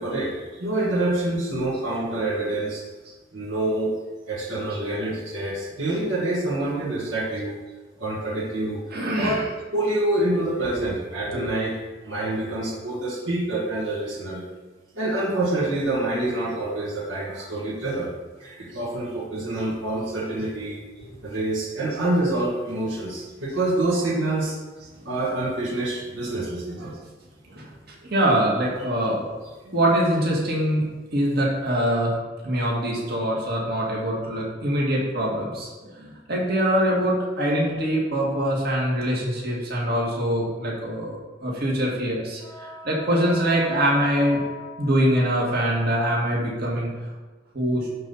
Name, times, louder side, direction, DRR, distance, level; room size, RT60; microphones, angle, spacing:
voice 1, 0.0-2.8 3.3-3.9 4.3-7.6 8.0-8.8 9.2-9.4 9.7-11.8 12.0-14.5 14.9-18.1 18.4-20.8 21.2-24.6 25.1-26.9, right 2 dB, 80° right, -4 dB, 1.9 m, -26 dB
voice 2, 8.9-9.5 11.3-11.5 23.6-23.7 26.2-26.3 26.8-27.0 27.5-27.7 28.0-29.3 29.7-30.8 31.1-32.1 32.4-41.1 41.4-46.9 47.5-47.9, right 1 dB, 55° right, -4 dB, 2.1 m, -24 dB
11.5 x 4.1 x 5.7 m, 1.3 s
head